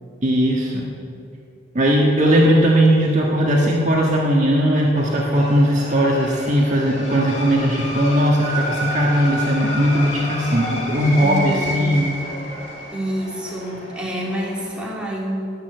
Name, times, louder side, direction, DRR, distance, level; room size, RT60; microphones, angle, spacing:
voice 1, 0.2-0.8 1.7-12.1, equal, 40° right, -2 dB, 1.6 m, -18 dB
sound 1, 5.0-14.9, equal, 35° left, 2.4 m, -31 dB
voice 2, 11.2-12.1 12.9-15.5, equal, 5° right, -4 dB, 2.5 m, -27 dB
19.5 x 6.9 x 8.0 m, 2.5 s
head